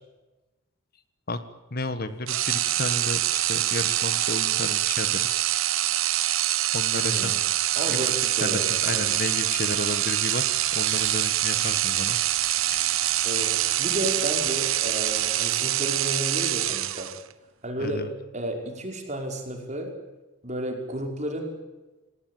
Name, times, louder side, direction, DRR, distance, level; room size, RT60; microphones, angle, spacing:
voice 1, 1.7-5.5 6.7-7.4 7.9-10.5 10.7-12.2 12.5-12.9 17.8-18.1, left 2 dB, 45° left, 11 dB, 1.5 m, -32 dB
sound 1, 2.3-17.3, right 13 dB, 90° right, 1.1 m, -25 dB
voice 2, 6.9-7.4 7.8-9.0 13.2-17.1 17.6-18.1 18.3-19.9 20.4-21.6, right 1 dB, 35° right, 3 dB, 5.5 m, -32 dB
sound 2, 8.5-15.3, right 10 dB, 60° right, 1.5 m, -40 dB
28.0 x 18.0 x 9.3 m, 1.1 s
head